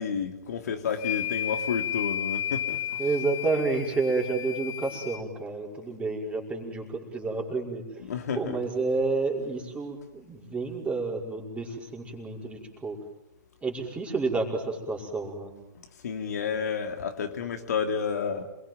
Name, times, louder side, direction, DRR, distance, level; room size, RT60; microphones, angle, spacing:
voice 1, 0.0-3.0 8.1-8.6 16.0-18.4, left 6 dB, 60° left, 2.8 m, -30 dB
sound 1, 0.9-5.2, left 10 dB, 35° left, 2.6 m, -33 dB
voice 2, 3.0-8.0 8.3-13.0 13.6-15.5, right 3 dB, 10° right, 5.4 m, -30 dB
28.0 x 22.0 x 9.3 m
figure-of-eight pair, 115°, 10 cm